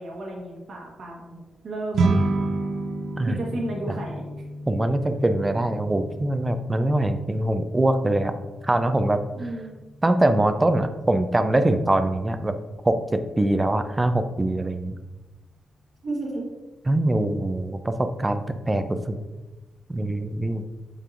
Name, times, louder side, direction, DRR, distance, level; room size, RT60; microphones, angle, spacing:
voice 1, 0.0-2.1 3.3-4.3 9.3-9.8 16.0-16.5, right 2 dB, 60° right, -1 dB, 1.2 m, -33 dB
sound 1, 1.9-11.4, right 3 dB, 80° right, 0.7 m, -31 dB
voice 2, 4.7-8.3 8.6-9.2 10.0-12.5 12.8-14.9 16.9-19.2 19.9-20.6, right 1 dB, 15° right, 9 dB, 0.4 m, -23 dB
8.3 x 5.4 x 2.5 m, 1.2 s
wide cardioid pair, 135°, 0 cm